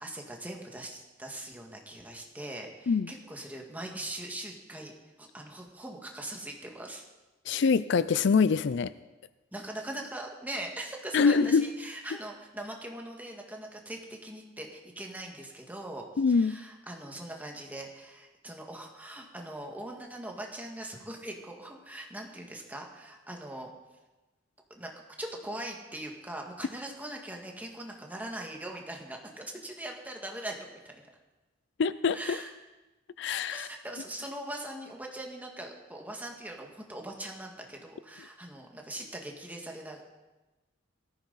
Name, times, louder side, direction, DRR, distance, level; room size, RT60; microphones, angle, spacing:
voice 1, 0.0-4.9 5.2-7.0 9.5-23.7 24.7-24.9 25.2-31.0 32.1-32.5 33.5-40.0, right 1 dB, 10° right, 1 dB, 1.8 m, -41 dB
voice 2, 7.5-8.9 11.1-11.7 16.2-16.6 31.8-32.4 33.2-33.7, left 5 dB, 65° left, 15 dB, 0.4 m, -24 dB
18.0 x 14.5 x 4.1 m, 1.1 s
head